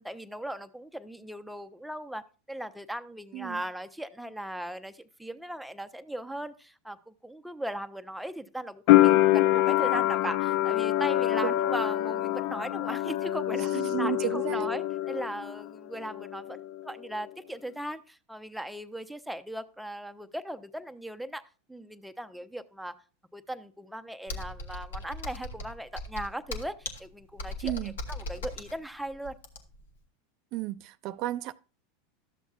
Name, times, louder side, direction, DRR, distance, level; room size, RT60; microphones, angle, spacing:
voice 1, 0.0-21.4 21.7-22.9 23.3-29.4, right 1 dB, ahead, 0.6 m, -38 dB
sound 1, 8.9-15.7 15.9-16.8, left 15 dB, 60° left, 0.3 m, -25 dB
voice 2, 13.5-14.7 27.6-28.0 30.5-31.5, right 16 dB, 55° right, 0.3 m, -33 dB
Computer keyboard, 24.3-29.9, left 2 dB, 80° left, 1.1 m, -38 dB
12.0 x 7.0 x 2.4 m
hypercardioid pair, 95°, 0 cm